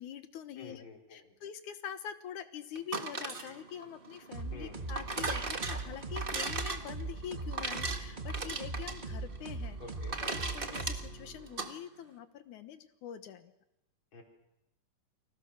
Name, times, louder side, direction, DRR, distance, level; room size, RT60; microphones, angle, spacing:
voice 1, 0.0-0.8 1.1-9.8 10.3-13.5, left 9 dB, 75° left, 10 dB, 2.6 m, -45 dB
voice 2, 0.6-1.3 4.5-4.8 9.8-10.2 14.1-14.2, left 3 dB, 40° left, 2 dB, 4.8 m, -49 dB
sound 1, 2.8-11.7, right 3 dB, 40° right, 0.7 m, -38 dB
sound 2, 4.3-11.5, right 3 dB, 80° right, 0.4 m, -40 dB
29.5 x 24.5 x 6.5 m, 0.90 s
omnidirectional pair, 3.6 m